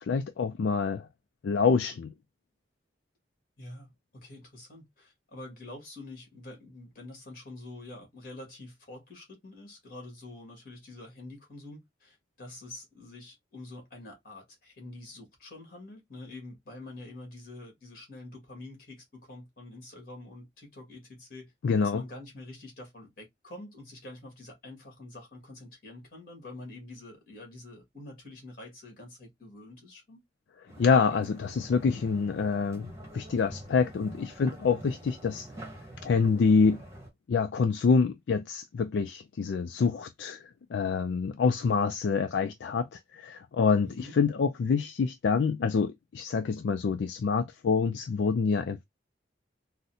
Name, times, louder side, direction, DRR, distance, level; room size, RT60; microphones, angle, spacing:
voice 1, 0.0-1.1 1.4-2.1 21.6-22.0 30.8-35.5 36.0-36.8 37.3-48.8, left 5 dB, 75° left, 0.3 m, -26 dB
voice 2, 3.6-21.5 21.8-30.2 43.8-44.1, left 2 dB, 50° left, 1.7 m, -46 dB
sound 1, 30.7-37.1, right 1 dB, 15° right, 1.0 m, -46 dB
3.9 x 2.1 x 2.7 m
head